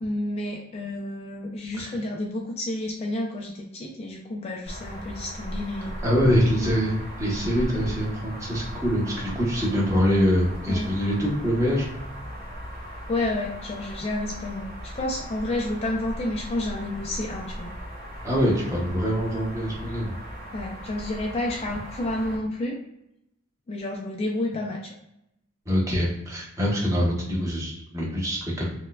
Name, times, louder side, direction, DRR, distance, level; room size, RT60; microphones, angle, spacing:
voice 1, 0.0-6.0 6.6-6.7 10.7-11.0 13.1-17.7 20.5-22.8 23.7-24.9, left 1 dB, 30° left, 0 dB, 0.3 m, -30 dB
sound 1, 4.6-22.4, equal, 45° right, 1.1 m, -37 dB
voice 2, 6.0-11.9 18.2-20.1 25.7-28.7, equal, 15° right, -5 dB, 0.9 m, -24 dB
4.3 x 2.2 x 2.2 m, 0.82 s
head